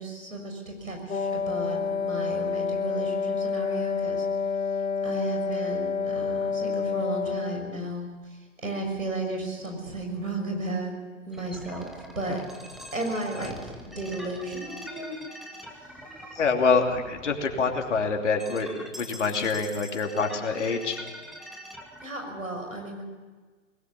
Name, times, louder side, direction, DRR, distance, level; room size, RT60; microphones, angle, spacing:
voice 1, 0.0-4.3 5.0-8.1 8.6-10.9 11.2-12.4 12.9-15.2 22.0-23.0, right 2 dB, 90° right, 3 dB, 6.4 m, -34 dB
Wind instrument woodwind instrument, 1.1-7.9, left 5 dB, 90° left, 1.0 m, -28 dB
sound 1, 11.3-22.1, equal, ahead, 0.6 m, -44 dB
voice 2, 16.3-21.0, left 4 dB, 60° left, 3 dB, 3.0 m, -26 dB
20.5 x 18.5 x 7.0 m, 1.4 s
figure-of-eight pair, 130°, 40 cm